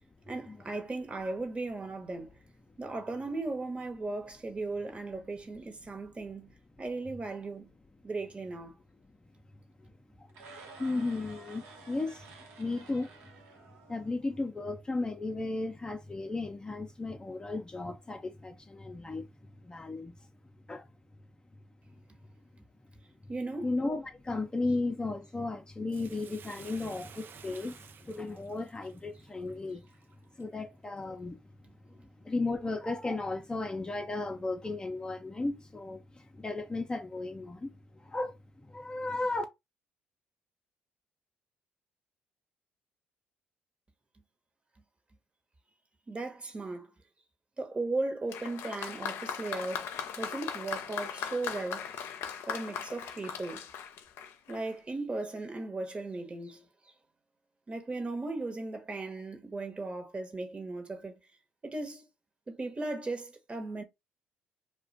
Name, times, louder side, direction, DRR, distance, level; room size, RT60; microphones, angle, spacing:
voice 1, 0.3-2.4 2.8-7.7 8.0-8.7 23.3-23.7 46.1-46.9 47.6-49.9 50.2-51.9 52.5-53.7 54.5-56.7 57.7-61.2 61.6-62.1 62.5-63.8, right 2 dB, 25° right, 1.0 m, -37 dB
sound 1, 10.3-14.5, right 4 dB, 80° right, 0.9 m, -52 dB
voice 2, 10.8-12.3 12.6-13.1 13.9-19.3 19.6-20.1 20.7-20.9 23.6-29.8 30.4-31.4 32.2-39.4, left 2 dB, 20° left, 0.5 m, -35 dB
Bathtub (filling or washing), 25.9-30.4 31.0-31.1, right 7 dB, 50° right, 0.4 m, -53 dB
Applause, 48.3-54.7, left 7 dB, 70° left, 0.5 m, -39 dB
2.4 x 2.2 x 4.0 m
supercardioid pair, 70°, 4 cm